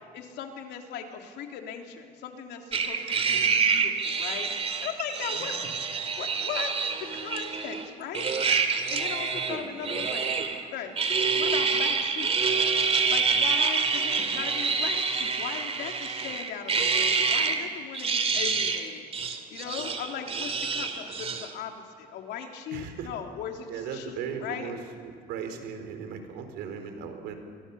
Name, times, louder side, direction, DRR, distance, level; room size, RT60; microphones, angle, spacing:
voice 1, 0.1-4.5 4.8-5.7 6.2-8.3 8.7-10.3 10.7-12.3 13.1-19.0 19.5-24.7, left 8 dB, 80° left, 3 dB, 3.3 m, -38 dB
sound 1, 2.7-7.9 8.1-10.6 11.0-17.6 17.9-18.9 19.1-21.5, right 5 dB, 35° right, 2.7 m, -27 dB
voice 2, 22.7-23.1 23.7-24.8 25.3-27.3, right 7 dB, 90° right, 7 dB, 4.1 m, -37 dB
29.5 x 23.5 x 7.1 m, 2.2 s
cardioid pair, 110°, 17 cm